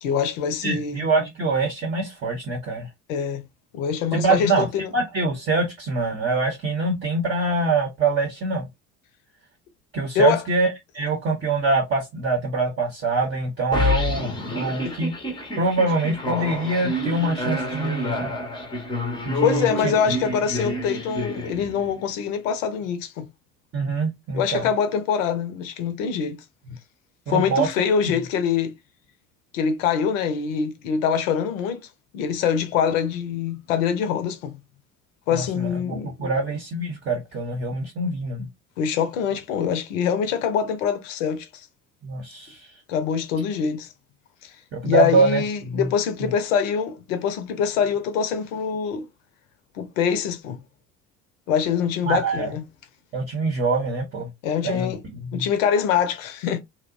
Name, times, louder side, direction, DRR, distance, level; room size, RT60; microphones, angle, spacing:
voice 1, 0.0-1.0 3.1-3.4 3.7-4.9 10.1-10.4 14.8-15.0 19.4-23.3 24.3-26.4 27.3-28.7 29.5-31.8 32.1-34.6 35.3-36.3 38.8-41.6 42.9-43.9 44.4-44.5 44.8-49.1 49.7-50.6 51.5-52.6 54.4-55.0 55.3-56.6, left 7 dB, 65° left, 0.7 m, -24 dB
voice 2, 0.6-2.9 4.1-4.7 4.9-8.7 9.9-15.1 15.6-18.3 19.3-19.9 23.7-24.6 27.3-27.7 28.0-28.1 35.3-38.5 42.0-42.7 44.7-45.9 46.2-46.3 52.1-52.5 53.1-54.3 54.6-55.5, right 3 dB, 25° right, 0.8 m, -24 dB
sound 1, 13.7-22.0, left 1 dB, 10° left, 0.7 m, -28 dB
2.8 x 2.0 x 2.4 m
figure-of-eight pair, 60°, 43 cm